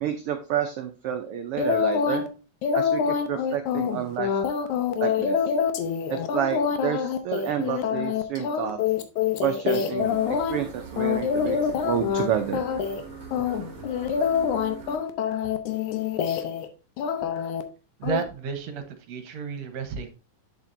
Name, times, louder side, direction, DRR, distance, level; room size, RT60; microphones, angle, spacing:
voice 1, 0.0-2.2 2.7-4.4 5.0-5.4 6.1-8.8 9.4-12.6, right 10 dB, 85° right, 6 dB, 1.2 m, -29 dB
sound 1, 1.6-2.3 2.6-10.6 11.0-12.3 12.5-13.0 13.3-16.7 17.0-17.6 18.0-18.2, left 7 dB, 80° left, 2.3 m, -26 dB
sound 2, 10.0-15.0, right 5 dB, 45° right, 1.7 m, -42 dB
voice 2, 18.0-20.1, right 6 dB, 65° right, 8 dB, 2.0 m, -32 dB
8.6 x 7.1 x 2.6 m, 0.33 s
omnidirectional pair, 3.5 m